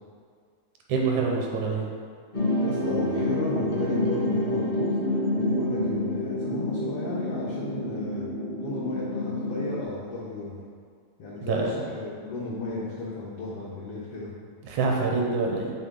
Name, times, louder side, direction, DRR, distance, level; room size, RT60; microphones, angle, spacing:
voice 1, 0.9-1.8 11.4-11.7 14.7-15.7, right 4 dB, 75° right, 0 dB, 2.0 m, -25 dB
sound 1, 2.3-9.8, left 1 dB, 50° left, 0.6 m, -28 dB
voice 2, 2.6-8.3 8.6-10.6 11.2-14.3, left 2 dB, 85° left, -5 dB, 1.3 m, -34 dB
8.4 x 3.5 x 3.6 m, 2.1 s
omnidirectional pair, 3.6 m